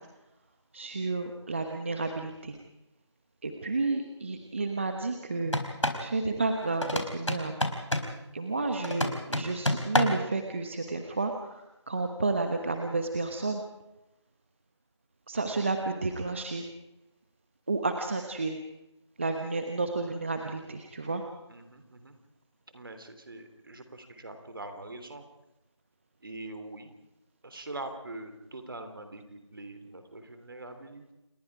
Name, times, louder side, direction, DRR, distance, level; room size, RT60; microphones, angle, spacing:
voice 1, 0.7-2.6 3.4-5.6 6.0-7.6 8.3-13.6 15.3-16.7 17.7-18.6 19.2-21.2, right 3 dB, 25° right, 5 dB, 1.2 m, -31 dB
sound 1, 5.4-6.1 6.8-8.2 8.8-10.3, left 1 dB, 85° left, 4.4 m, -29 dB
voice 2, 21.5-22.2 22.7-25.2 26.2-26.9 27.4-31.1, right 2 dB, 45° right, 8 dB, 3.4 m, -43 dB
28.5 x 20.5 x 4.9 m, 0.91 s
figure-of-eight pair, 170°, 15 cm